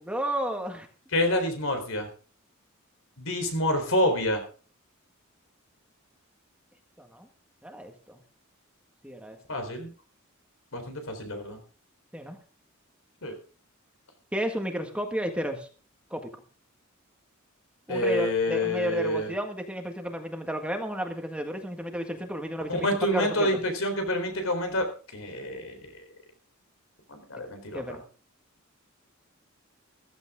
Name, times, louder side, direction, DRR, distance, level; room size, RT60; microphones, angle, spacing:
voice 1, 0.1-0.9 7.0-7.3 7.6-8.2 9.0-9.4 12.1-12.4 14.3-15.7 16.1-16.3 17.9-23.5 27.7-28.0, equal, 5° right, 4 dB, 1.8 m, -32 dB
voice 2, 1.1-2.1 3.2-4.4 9.5-9.9 10.7-11.6 13.2-13.3 17.9-19.3 22.7-25.9 27.1-28.0, left 1 dB, 70° left, 6 dB, 4.0 m, -28 dB
15.0 x 14.0 x 3.7 m, 0.38 s
head